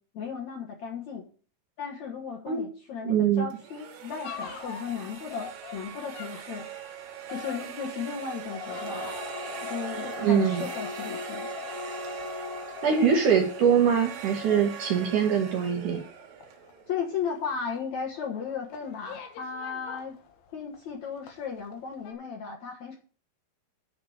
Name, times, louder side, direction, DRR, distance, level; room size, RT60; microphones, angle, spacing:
voice 1, 0.1-1.2 1.8-6.7 7.3-9.1 9.6-11.5 16.9-20.2 20.5-23.0, left 6 dB, 60° left, 0 dB, 2.1 m, -35 dB
voice 2, 3.0-3.5 10.2-10.6 12.8-16.0, right 7 dB, 60° right, 2 dB, 2.8 m, -23 dB
sound 1, 3.5-17.4, right 10 dB, 85° right, 3.5 m, -41 dB
sound 2, 4.2-20.9 21.2-21.8 22.0-22.1, left 6 dB, 75° left, 3.1 m, -42 dB
10.0 x 5.0 x 6.9 m, 0.41 s
omnidirectional pair, 4.6 m